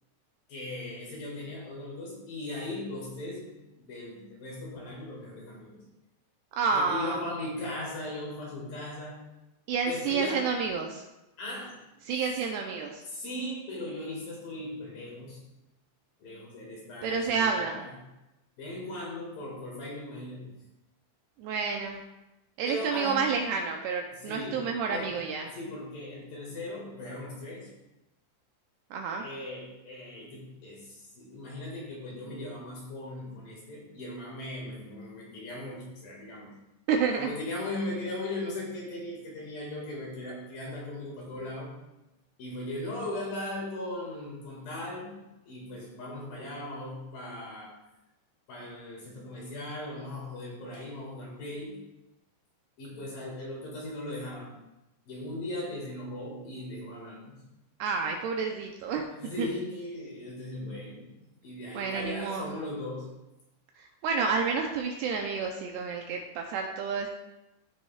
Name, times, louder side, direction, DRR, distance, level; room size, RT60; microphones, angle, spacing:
voice 1, 0.5-5.8 6.7-9.2 9.8-10.5 11.4-11.8 12.1-12.4 13.0-15.4 16.2-17.9 18.6-20.5 22.6-23.3 24.1-25.2 25.4-27.7 29.2-36.5 37.2-41.8 42.4-45.2 45.5-47.8 48.5-51.9 52.8-54.6 55.1-57.4 59.2-61.1 61.4-63.1, left 1 dB, 55° left, -3 dB, 3.3 m, -38 dB
voice 2, 6.6-7.2 9.7-11.0 12.1-13.0 17.0-17.8 21.4-22.0 22.6-25.5 28.9-29.2 36.9-37.3 57.8-59.0 59.4-59.5 61.7-62.5 63.8-67.1, right 5 dB, 85° right, 2 dB, 2.4 m, -29 dB
15.5 x 6.4 x 2.4 m, 0.97 s
omnidirectional pair, 5.3 m